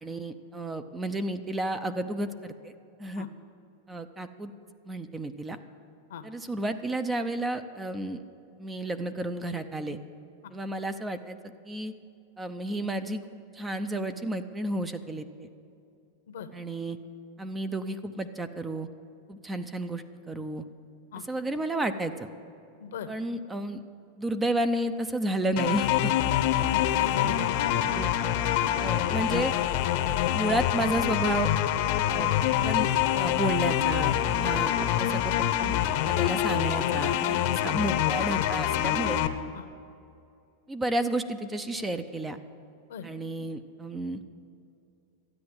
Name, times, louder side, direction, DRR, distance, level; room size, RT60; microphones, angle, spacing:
voice 1, 0.0-2.7 3.0-3.3 3.9-4.5 4.9-5.6 6.2-8.2 8.6-10.0 10.5-11.4 11.6-11.9 12.4-15.5 16.5-17.0 17.4-18.9 19.3-20.6 21.3-22.3 23.1-23.8 24.2-26.3 28.0-28.1 28.8-29.5 30.0-31.5 32.1-32.3 32.6-35.3 35.6-39.2 40.7-42.4 43.0-44.2, right 1 dB, 10° right, 10 dB, 0.6 m, -32 dB
sound 1, 25.6-39.3, left 11 dB, 55° left, 0.8 m, -26 dB
voice 2, 26.7-27.7 39.5-39.7 42.9-43.1, left 6 dB, 80° left, 9 dB, 1.0 m, -38 dB
13.0 x 9.5 x 7.9 m, 2.6 s
supercardioid pair, 135°, 0 cm